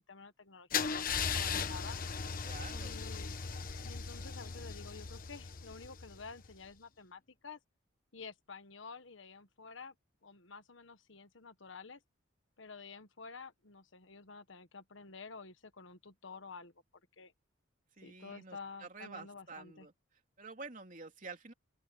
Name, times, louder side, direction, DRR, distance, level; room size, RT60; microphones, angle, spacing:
voice 1, 0.1-2.0 2.8-3.3 3.8-7.6 8.1-9.9 10.2-12.0 12.6-16.7 17.2-17.3 18.0-19.9, left 4 dB, 70° left, 1.4 m, -50 dB
Car / Engine starting / Idling, 0.7-6.6, left 6 dB, 45° left, 1.2 m, -38 dB
voice 2, 2.4-3.0 18.0-19.9 20.4-21.5, right 4 dB, 40° right, 3.2 m, -49 dB
open air
head